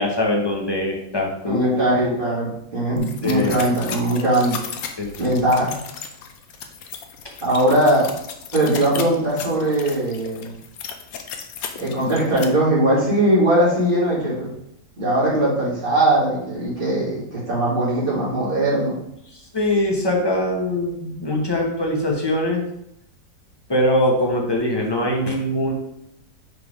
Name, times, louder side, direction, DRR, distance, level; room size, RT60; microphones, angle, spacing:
voice 1, 0.0-2.1 3.2-3.5 5.0-5.1 19.5-22.6 23.7-25.7, left 1 dB, 20° left, 0 dB, 0.9 m, -22 dB
voice 2, 1.4-4.6 5.2-5.7 7.4-8.1 8.5-10.5 11.8-14.5 15.0-19.0, right 1 dB, 30° right, -8 dB, 2.5 m, -20 dB
sound 1, 3.0-12.4, left 7 dB, 65° left, 1.0 m, -35 dB
5.9 x 3.7 x 4.7 m, 0.77 s
omnidirectional pair, 1.9 m